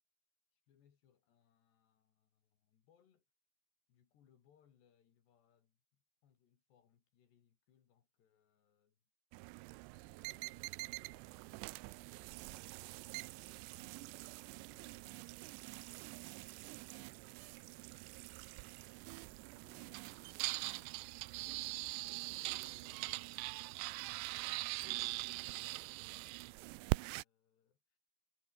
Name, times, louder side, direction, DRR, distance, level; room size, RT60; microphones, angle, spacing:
voice 1, 0.5-3.3 3.9-9.0 10.0-12.9 13.3-14.3 14.6-17.7 18.7-21.3 22.3-23.7 24.3-28.0, left 8 dB, 75° left, 4.9 m, -73 dB
sound 1, 9.3-27.2, right 23 dB, 85° right, 2.7 m, -43 dB
omnidirectional pair, 4.9 m